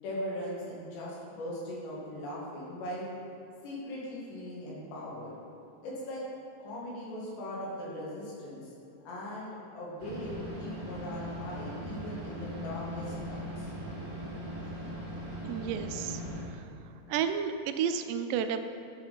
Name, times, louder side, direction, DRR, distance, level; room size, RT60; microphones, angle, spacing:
voice 1, 0.0-3.1 3.6-5.3 5.8-6.2 6.6-8.7 9.1-13.7, left 1 dB, 90° left, -6 dB, 4.4 m, -39 dB
sound 1, 10.0-16.4, equal, 45° right, 2.2 m, -39 dB
voice 2, 15.5-16.7 17.1-18.6, right 7 dB, 85° right, 8 dB, 2.7 m, -32 dB
10.5 x 5.7 x 5.5 m, 2.8 s
omnidirectional pair, 4.8 m